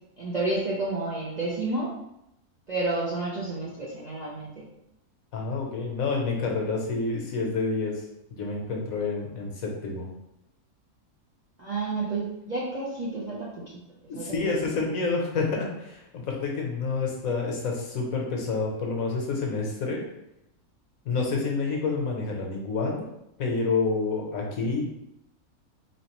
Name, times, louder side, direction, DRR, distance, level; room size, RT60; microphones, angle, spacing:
voice 1, 0.2-1.9 2.7-4.6 11.6-13.8 14.1-14.5, right 2 dB, 40° right, -7 dB, 0.7 m, -30 dB
voice 2, 5.3-8.0 8.3-10.1 14.1-20.0 21.0-23.1 23.4-24.9, left 4 dB, 70° left, 0 dB, 1.2 m, -28 dB
3.9 x 3.1 x 2.9 m, 0.82 s
omnidirectional pair, 1.6 m